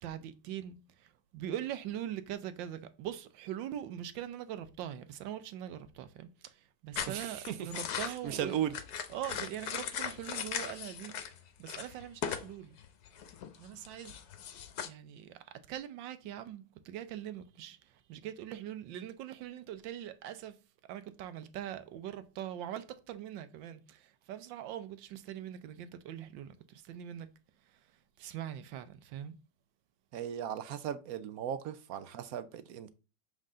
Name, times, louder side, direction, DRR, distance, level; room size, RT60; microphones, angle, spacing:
voice 1, 0.0-8.6 9.1-11.1 11.6-12.8 13.6-14.2 14.8-20.6 20.9-27.3 27.6-29.3, right 11 dB, 85° right, 1.4 m, -42 dB
sound 1, 7.0-11.4 11.7-12.5 12.8-14.9, left 8 dB, 65° left, 1.2 m, -39 dB
voice 2, 7.1-7.7 8.2-8.7 30.1-32.9, right 10 dB, 70° right, 0.9 m, -36 dB
7.5 x 3.8 x 3.7 m
omnidirectional pair, 2.0 m